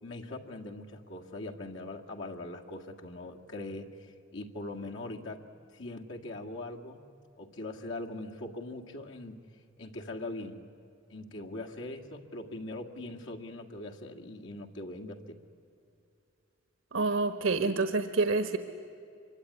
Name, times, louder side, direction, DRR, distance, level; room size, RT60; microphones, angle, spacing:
voice 1, 0.0-5.5 5.7-7.0 7.4-9.4 9.8-10.6 11.1-15.4, left 2 dB, 65° left, 1 dB, 2.0 m, -41 dB
voice 2, 16.9-18.6, right 3 dB, 85° right, 9 dB, 1.2 m, -27 dB
25.0 x 23.5 x 9.8 m, 2.5 s
head